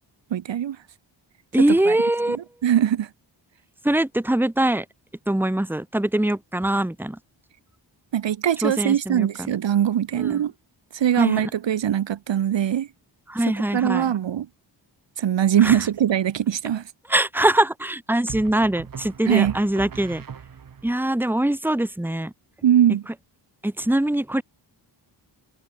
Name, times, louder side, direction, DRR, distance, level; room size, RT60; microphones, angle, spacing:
voice 1, 0.3-0.8 1.9-2.0 2.6-3.1 8.1-10.5 10.9-12.9 13.7-14.5 15.2-16.8 19.3-19.5 22.6-23.0, right 10 dB, 70° right, 1.0 m, -21 dB
voice 2, 1.5-2.4 3.8-4.8 5.3-7.2 8.6-9.5 10.1-10.4 11.2-11.5 13.3-14.1 15.6-15.8 17.1-20.2 20.8-22.3 23.6-24.4, right 1 dB, 5° right, 1.4 m, -23 dB
sound 1, 15.8-16.2 18.3-20.9, right 7 dB, 45° right, 1.4 m, -39 dB
wide cardioid pair, 155°, 45 cm